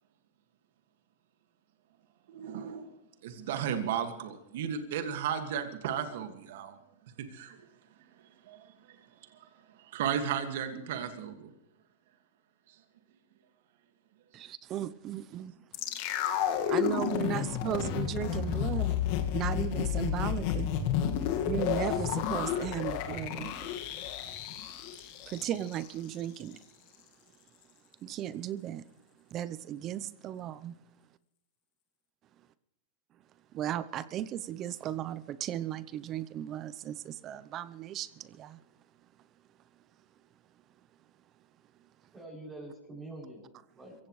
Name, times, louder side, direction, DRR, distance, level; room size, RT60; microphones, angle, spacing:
voice 1, 2.3-2.9 3.2-6.8 7.2-7.6 8.5-9.0 9.3-9.5 9.8-11.5, right 8 dB, 65° right, 1.9 m, -34 dB
voice 2, 14.3-15.5 16.7-19.0 19.3-20.7 21.5-23.7 25.3-26.6 28.0-28.8 29.3-30.8 33.5-38.6, right 11 dB, 35° right, 0.8 m, -36 dB
sound 1, 15.7-25.9 26.1-26.2, left 9 dB, 55° left, 1.9 m, -31 dB
voice 3, 42.1-44.1, right 2 dB, 15° right, 7.3 m, -46 dB
23.0 x 16.0 x 3.2 m
hypercardioid pair, 115°, 0 cm